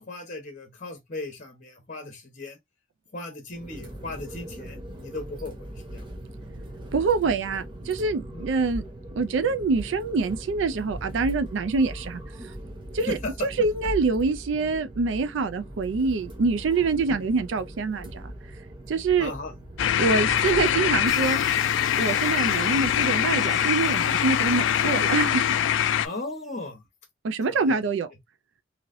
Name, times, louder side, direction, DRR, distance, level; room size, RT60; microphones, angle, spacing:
voice 1, 0.0-2.6 3.1-6.1 8.3-8.5 13.1-13.3 17.1-17.3 19.2-19.6 26.0-26.8 27.5-27.8, left 2 dB, 40° left, 1.0 m, -37 dB
sound 1, 3.5-21.1, right 1 dB, 25° right, 0.8 m, -40 dB
voice 2, 6.9-8.8 9.1-12.5 12.9-18.3 18.9-19.3 20.0-21.4 22.0-25.5 27.2-28.1, right 4 dB, 70° right, 0.4 m, -25 dB
sound 2, 19.8-26.1, left 10 dB, 70° left, 0.3 m, -23 dB
sound 3, 21.0-26.6, equal, ahead, 0.5 m, -47 dB
3.1 x 2.8 x 2.5 m
head